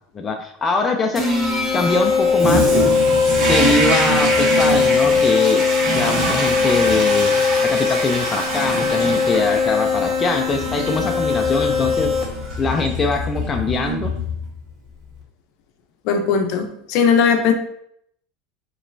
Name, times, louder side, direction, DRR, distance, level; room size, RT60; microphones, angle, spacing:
voice 1, 0.1-1.2 1.7-2.7 3.3-5.6 5.9-7.3 7.6-12.1 12.6-14.1, left 3 dB, 20° left, 3 dB, 0.5 m, -22 dB
sound 1, 1.2-12.5, left 5 dB, ahead, 1.2 m, -20 dB
Toilet flush, 2.4-14.7, right 2 dB, 45° right, 1.6 m, -24 dB
voice 2, 16.0-17.5, left 6 dB, 60° left, 5 dB, 0.6 m, -18 dB
5.0 x 3.1 x 2.6 m, 0.71 s
supercardioid pair, 115°, 0 cm